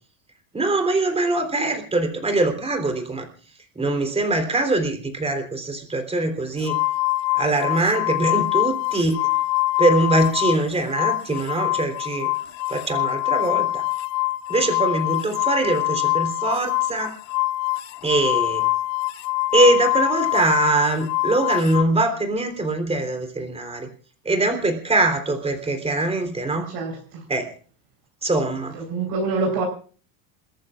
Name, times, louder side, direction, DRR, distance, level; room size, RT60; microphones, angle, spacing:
voice 1, 0.5-3.3 3.8-6.8 7.3-9.3 9.8-12.3 12.7-13.8 14.5-17.2 18.0-18.6 19.5-23.9 24.3-26.7 27.3-27.5 28.2-28.8, right 2 dB, 10° right, 5 dB, 3.6 m, -22 dB
sound 1, 6.6-10.6 10.9-21.8, left 20 dB, 75° left, 0.8 m, -24 dB
voice 2, 26.6-27.2 28.7-29.6, right 3 dB, 50° right, 0 dB, 4.4 m, -26 dB
28.5 x 14.0 x 2.5 m, 0.40 s
supercardioid pair, 120°, 50 cm